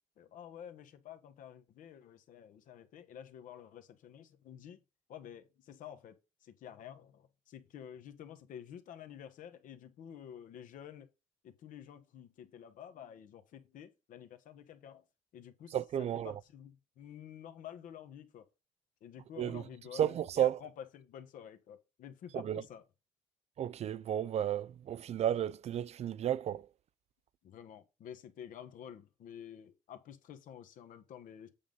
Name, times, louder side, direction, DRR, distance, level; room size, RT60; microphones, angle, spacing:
voice 1, 0.2-4.8 5.1-11.1 11.4-15.0 15.3-18.5 19.0-22.8 27.4-31.5, left 9 dB, 70° left, 1.3 m, -50 dB
voice 2, 15.7-16.3 19.4-19.6 19.9-20.6 22.3-22.6 23.6-26.7, right 10 dB, 50° right, 0.4 m, -33 dB
8.5 x 3.8 x 5.3 m
supercardioid pair, 80°, 14 cm